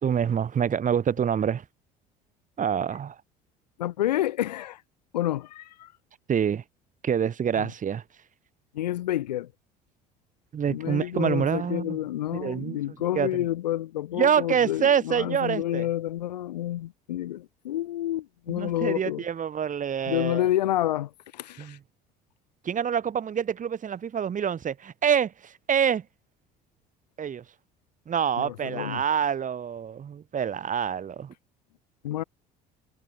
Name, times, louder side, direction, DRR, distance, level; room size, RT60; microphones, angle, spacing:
voice 1, 0.0-1.6 2.6-3.1 6.3-6.6 7.0-8.0 10.5-12.0 12.3-12.8 13.1-13.3 14.1-15.9 18.5-20.5 21.6-21.8 22.6-26.0 27.2-27.4 28.1-31.3, right 8 dB, 40° right, 3.1 m, -26 dB
voice 2, 3.8-4.8 5.1-5.9 7.6-7.7 8.7-9.5 10.7-19.2 20.1-21.8 28.4-29.0 32.0-32.2, left 13 dB, 85° left, 3.3 m, -29 dB
hypercardioid pair, 70°, 21 cm